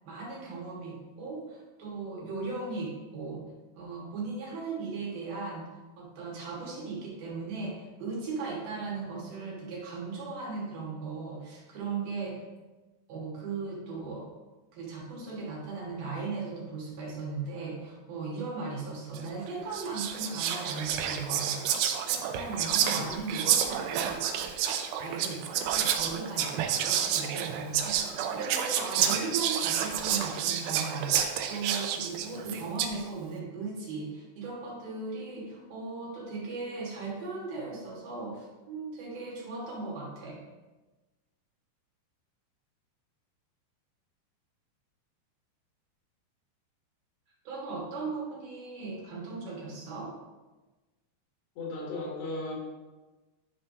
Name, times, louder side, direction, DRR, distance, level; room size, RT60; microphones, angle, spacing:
voice 1, 0.0-3.4 3.7-5.7 6.0-12.4 13.1-14.3 14.7-21.6 22.0-24.5 25.0-40.4 47.4-50.1, right 4 dB, 65° right, -4 dB, 3.1 m, -37 dB
Whispering, 19.2-19.4 19.7-33.0, right 9 dB, 85° right, 2.5 m, -29 dB
voice 2, 22.9-23.3 29.0-29.3 32.3-32.7 51.6-52.5, left 2 dB, 75° left, -4 dB, 3.9 m, -38 dB
11.5 x 5.5 x 2.7 m, 1.2 s
omnidirectional pair, 5.0 m